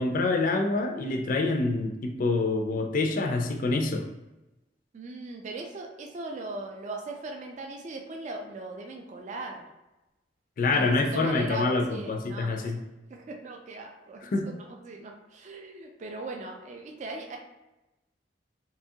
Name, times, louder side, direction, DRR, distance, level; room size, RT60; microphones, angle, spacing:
voice 1, 0.0-4.1 10.6-12.8 14.2-14.5, left 3 dB, 50° left, 3 dB, 0.3 m, -26 dB
voice 2, 4.9-9.7 10.7-12.7 13.1-17.4, right 2 dB, 40° right, 2 dB, 0.3 m, -39 dB
2.8 x 2.3 x 2.7 m, 1.0 s
head